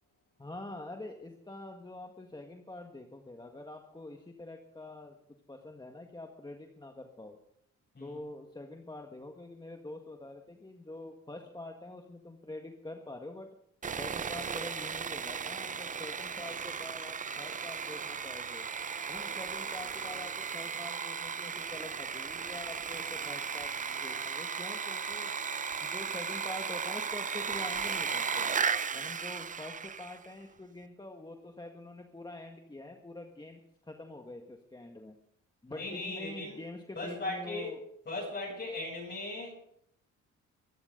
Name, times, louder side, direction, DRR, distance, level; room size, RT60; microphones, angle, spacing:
voice 1, 0.4-5.2 5.5-7.4 8.0-13.5 14.0-18.7 19.1-23.7 24.0-25.3 25.8-28.5 28.9-35.2 35.6-37.8, left 2 dB, 15° left, 3 dB, 1.7 m, -45 dB
Sawing, 13.8-30.3, right 6 dB, 25° right, 0.6 m, -36 dB
voice 2, 35.7-36.6 37.0-37.7 38.1-39.5, left 2 dB, 35° left, -5 dB, 8.0 m, -38 dB
24.0 x 12.0 x 3.9 m, 0.72 s
cardioid pair, 90°, 30 cm